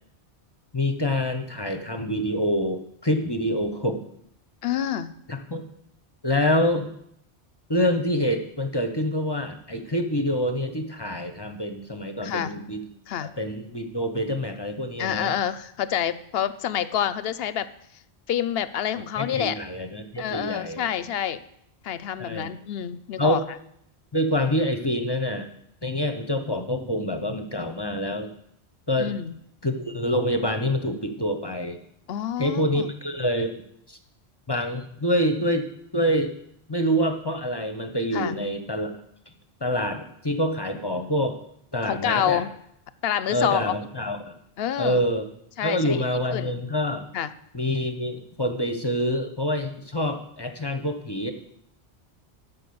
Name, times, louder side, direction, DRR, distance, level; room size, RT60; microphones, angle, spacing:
voice 1, 0.7-4.0 5.3-5.6 6.2-6.9 7.7-12.8 13.4-15.3 19.2-20.9 22.2-22.5 23.2-23.4 24.1-25.5 25.8-28.3 28.9-29.1 29.6-31.8 32.4-33.6 33.9-34.0 34.5-36.3 36.7-38.9 39.6-41.4 41.7-42.4 43.3-44.3 44.8-45.3 45.6-47.0 47.5-51.3, equal, 25° left, 6 dB, 0.7 m, -26 dB
voice 2, 4.6-5.1 12.2-12.5 13.1-13.3 15.0-17.7 18.3-19.6 20.2-21.4 21.8-23.4 29.0-29.3 32.1-32.9 38.1-38.4 41.9-42.5 43.0-43.7 44.6-45.0 45.6-46.0 46.3-46.6 47.1-47.3, left 10 dB, 70° left, 15 dB, 0.8 m, -27 dB
12.0 x 5.7 x 6.9 m, 0.72 s
omnidirectional pair, 1.1 m